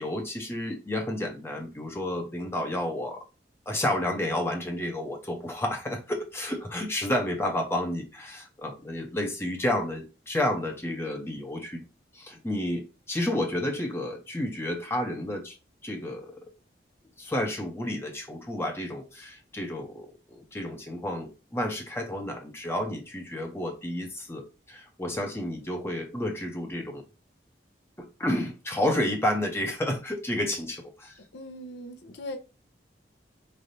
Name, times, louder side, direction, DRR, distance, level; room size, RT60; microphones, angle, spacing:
voice 1, 0.0-3.2 3.7-11.8 12.1-15.6 15.8-16.3 17.2-27.0 28.2-31.1, left 1 dB, 15° left, 0.6 m, -31 dB
voice 2, 31.3-32.4, left 1 dB, 70° left, 0.7 m, -39 dB
4.7 x 3.3 x 2.6 m
head